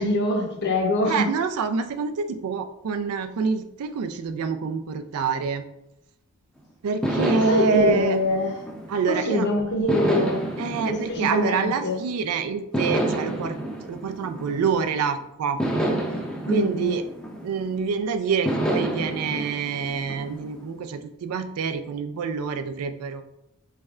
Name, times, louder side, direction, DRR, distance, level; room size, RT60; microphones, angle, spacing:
voice 1, 0.0-1.3 7.5-8.5 9.3-10.5 10.9-11.9 16.4-16.9, left 2 dB, 50° left, 1 dB, 0.7 m, -24 dB
voice 2, 1.0-5.6 6.8-8.2 8.9-9.5 10.6-15.6 16.5-17.0 17.4-23.2, right 5 dB, 90° right, 8 dB, 0.4 m, -26 dB
sound 1, 7.0-9.3 9.9-12.1 12.7-15.0 15.6-17.9 18.5-20.7, right 1 dB, 5° left, 0.4 m, -29 dB
4.2 x 3.3 x 2.4 m, 0.84 s
head